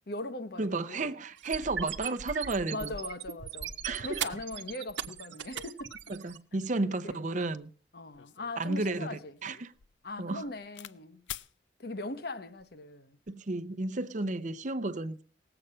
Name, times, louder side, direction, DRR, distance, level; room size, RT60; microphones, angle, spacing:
voice 1, 0.1-1.2 2.7-5.9 6.9-7.2 7.9-9.4 10.0-11.2 11.8-13.2, left 2 dB, 60° left, 0.9 m, -40 dB
voice 2, 0.6-2.9 3.8-4.2 6.1-7.7 8.6-9.7 10.2-10.4 13.3-15.2, right 2 dB, 45° right, 0.7 m, -33 dB
sound 1, 1.4-6.4, right 8 dB, 90° right, 1.0 m, -38 dB
sound 2, 8.1-11.0 11.3-11.5 12.4-12.7, left 11 dB, 85° left, 0.6 m, -47 dB
19.0 x 7.9 x 5.5 m
head